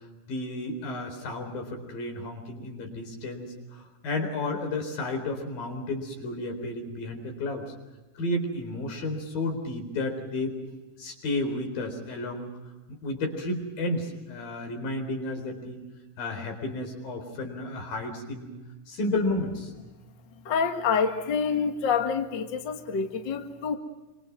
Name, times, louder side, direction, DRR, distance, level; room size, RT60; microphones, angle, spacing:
voice 1, 0.3-7.7 8.2-10.6 11.0-12.5 13.0-15.8 16.2-18.5 18.9-19.7, left 2 dB, 80° left, 4 dB, 5.9 m, -32 dB
voice 2, 20.5-23.8, left 6 dB, 40° left, 4 dB, 1.9 m, -27 dB
27.5 x 25.5 x 6.1 m, 1.2 s
omnidirectional pair, 4.0 m